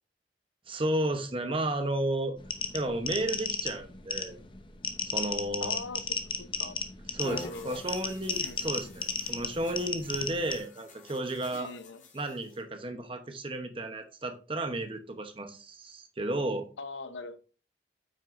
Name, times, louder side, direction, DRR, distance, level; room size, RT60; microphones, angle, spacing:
voice 1, 0.7-2.3 2.7-4.4 5.0-5.7 7.1-11.7 12.1-16.7, right 1 dB, 30° right, 0.9 m, -33 dB
sound 1, 2.4-10.6, left 6 dB, 25° left, 0.7 m, -34 dB
voice 2, 5.6-6.8 7.2-7.8 8.4-8.9 11.5-12.0 16.8-17.4, left 3 dB, 85° left, 0.8 m, -42 dB
sound 2, 7.2-12.6, left 1 dB, 45° left, 1.7 m, -48 dB
8.4 x 6.3 x 2.6 m
head